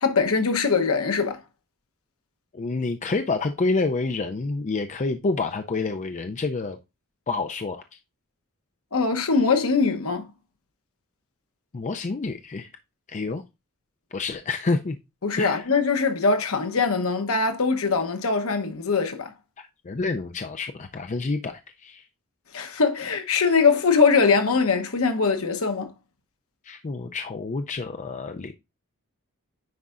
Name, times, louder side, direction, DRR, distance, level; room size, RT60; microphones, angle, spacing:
voice 1, 0.0-1.4 8.9-10.3 15.2-19.3 22.5-25.9, left 4 dB, 65° left, 1.0 m, -22 dB
voice 2, 2.5-6.8 7.3-7.8 11.7-12.7 13.1-13.4 14.1-15.0 15.4-15.7 19.6-22.0 26.6-28.5, left 3 dB, 35° left, 0.4 m, -28 dB
9.4 x 4.7 x 2.5 m
head